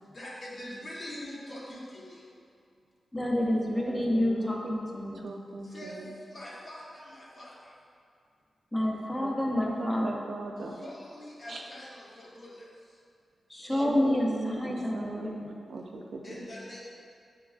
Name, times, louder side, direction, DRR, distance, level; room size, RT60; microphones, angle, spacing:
voice 1, 0.1-2.2 5.7-5.9 6.3-7.5 10.8-12.5 16.2-16.8, left 1 dB, 55° left, -6 dB, 0.9 m, -43 dB
voice 2, 3.1-5.3 8.7-10.3 13.5-15.6, left 1 dB, 15° left, -1 dB, 0.6 m, -29 dB
voice 3, 3.7-4.9 5.2-6.1 9.2-10.8 11.5-11.6 13.7-15.4 15.7-16.5, right 3 dB, 70° right, 2 dB, 0.3 m, -38 dB
6.1 x 2.2 x 2.3 m, 2.3 s
cardioid pair, 55°, 0 cm